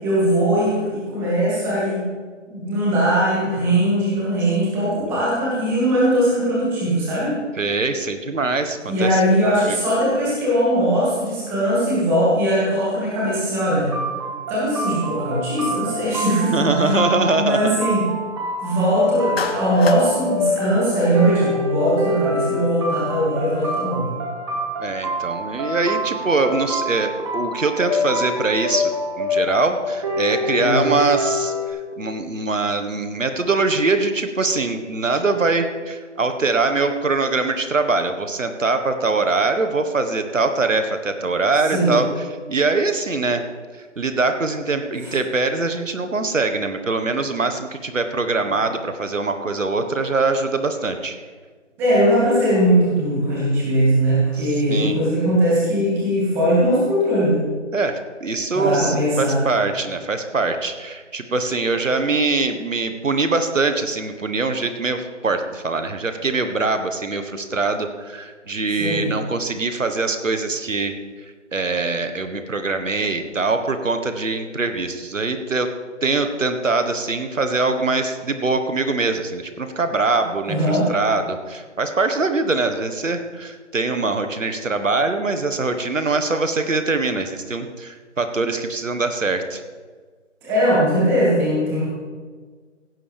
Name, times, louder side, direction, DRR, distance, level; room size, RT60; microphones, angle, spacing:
voice 1, 0.0-2.0 2.5-7.4 8.9-13.9 14.5-18.1 18.6-24.1 30.6-30.8 41.6-42.0 45.0-45.1 51.8-57.4 58.5-59.4 68.7-69.1 80.5-80.9 90.4-91.9, equal, 5° right, -7 dB, 2.0 m, -20 dB
voice 2, 7.6-9.2 9.7-9.8 16.5-17.8 24.8-28.9 29.2-42.1 42.5-43.4 44.0-51.1 54.4-55.0 57.7-70.9 71.5-75.7 76.0-89.6, right 3 dB, 90° right, 8 dB, 1.5 m, -23 dB
sound 1, 13.9-31.7, left 1 dB, 25° right, 2.0 m, -26 dB
Clapping, 19.4-20.1, left 4 dB, 50° left, 1.2 m, -28 dB
16.5 x 12.0 x 3.5 m, 1.5 s
figure-of-eight pair, 165°, 37 cm